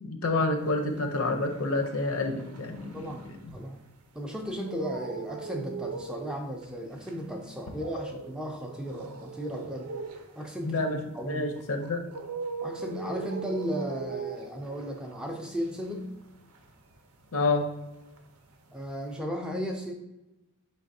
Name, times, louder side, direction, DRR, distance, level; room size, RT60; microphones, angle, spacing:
voice 1, 0.0-3.4 10.6-11.0 11.3-12.0 17.3-17.7, left 2 dB, 70° left, 5 dB, 0.6 m, -28 dB
sound 1, 0.8-4.1 4.4-17.8 18.1-19.2, right 4 dB, 90° right, 0.6 m, -40 dB
voice 2, 2.9-3.8 4.1-9.9 10.4-11.5 12.6-16.1 18.7-19.9, equal, 5° right, 2 dB, 0.3 m, -35 dB
4.5 x 3.3 x 2.6 m, 0.98 s
head